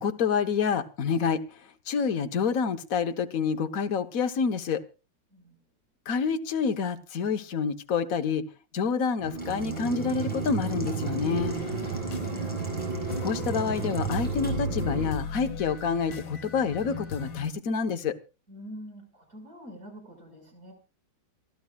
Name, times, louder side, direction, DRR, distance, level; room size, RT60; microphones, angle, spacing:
voice 1, 0.0-1.4 1.9-4.8 6.1-8.4 8.7-11.6 13.2-18.1, left 6 dB, 50° left, 7 dB, 1.5 m, -28 dB
voice 2, 5.3-5.6 11.7-12.6 18.5-20.7, equal, 45° right, 3 dB, 6.4 m, -46 dB
sound 1, 9.2-15.1, right 5 dB, 75° right, 3.0 m, -32 dB
Boiling, 9.4-14.5, equal, 5° left, 7.2 m, -47 dB
sound 2, 11.4-17.5, left 5 dB, 90° left, 2.2 m, -38 dB
28.0 x 12.0 x 2.4 m, 0.31 s
omnidirectional pair, 2.1 m